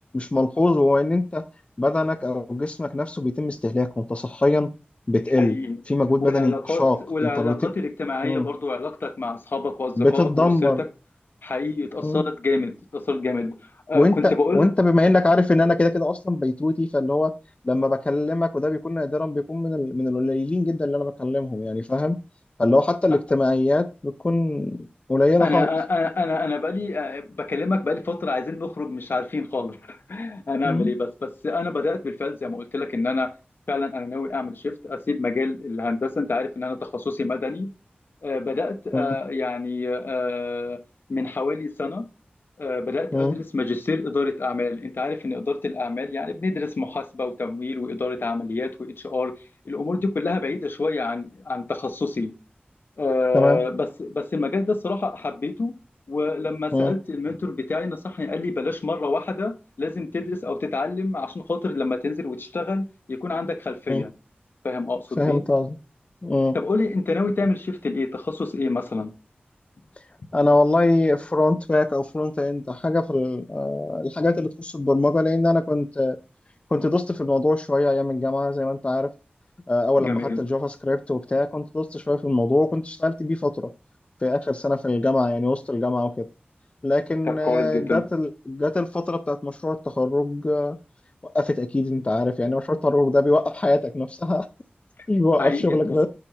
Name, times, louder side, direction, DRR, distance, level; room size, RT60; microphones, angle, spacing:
voice 1, 0.1-1.4 1.8-4.7 5.1-5.6 5.9-7.6 8.2-8.5 10.0-10.8 12.0-12.2 13.9-17.3 17.6-22.2 22.6-25.7 30.6-30.9 38.9-39.2 43.1-43.3 53.3-53.6 56.7-56.9 63.9-64.0 65.2-65.8 66.2-66.6 70.3-76.2 76.7-79.1 79.7-83.7 84.2-86.3 86.8-90.8 91.2-94.5 95.1-96.1, left 2 dB, 35° left, 0.5 m, -22 dB
voice 2, 5.4-5.8 6.2-10.9 11.4-13.6 13.9-14.7 25.4-33.3 33.7-37.7 38.2-40.8 41.1-42.0 42.6-49.3 49.7-52.3 53.0-55.7 56.1-64.1 64.6-65.4 66.5-69.1 80.0-80.4 87.2-88.0 95.4-95.8, left 3 dB, 70° left, 0.9 m, -27 dB
8.6 x 4.6 x 2.9 m
wide cardioid pair, 75°, 4 cm